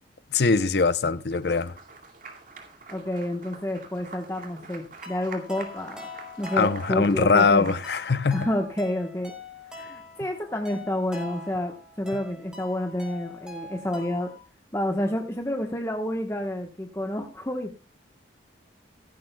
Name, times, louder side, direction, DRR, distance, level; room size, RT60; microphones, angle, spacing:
voice 1, 0.3-1.7 6.5-8.5, left 4 dB, 60° left, 0.6 m, -22 dB
Applause, 1.3-8.3, right 4 dB, 45° right, 2.3 m, -46 dB
voice 2, 2.9-6.1 6.4-7.7 8.3-9.3 9.7-14.3 14.7-17.7, left 1 dB, 15° left, 1.1 m, -29 dB
sound 1, 5.0-14.4, left 2 dB, 5° right, 3.5 m, -44 dB
16.0 x 15.0 x 2.2 m
head